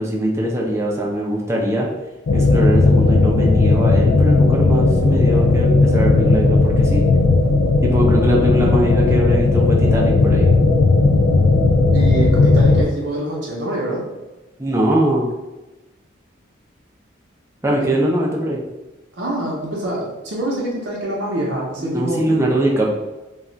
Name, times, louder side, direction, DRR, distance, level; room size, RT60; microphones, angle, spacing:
voice 1, 0.0-1.9 2.3-7.0 7.8-10.5 14.6-15.3 17.6-18.6 21.8-22.9, equal, 15° right, -2 dB, 0.4 m, -21 dB
sound 1, 2.3-12.8, left 3 dB, 65° left, 0.3 m, -15 dB
voice 2, 11.9-14.0 17.8-17.9 19.2-22.2, right 1 dB, 60° right, -4 dB, 0.6 m, -25 dB
2.3 x 2.1 x 3.7 m, 1.1 s
head